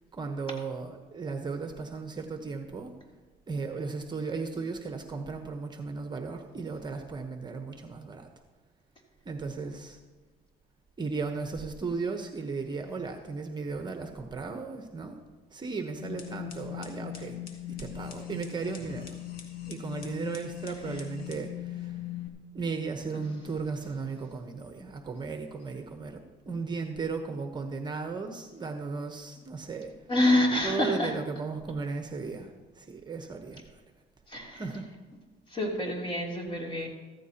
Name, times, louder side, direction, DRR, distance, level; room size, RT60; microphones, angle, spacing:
voice 1, 0.1-2.9 3.5-8.3 9.3-10.0 11.0-15.1 15.5-17.4 17.8-19.2 19.7-22.0 22.5-29.9 30.6-32.5 32.7-33.8 34.5-34.9, right 4 dB, 25° right, 5 dB, 1.0 m, -35 dB
sound 1, 16.0-22.3, left 12 dB, 65° left, 1.8 m, -39 dB
voice 2, 30.1-31.1 34.3-34.6 35.5-36.9, left 1 dB, 30° left, -1 dB, 3.2 m, -27 dB
14.5 x 14.5 x 2.9 m, 1.3 s
cardioid pair, 110°, 17 cm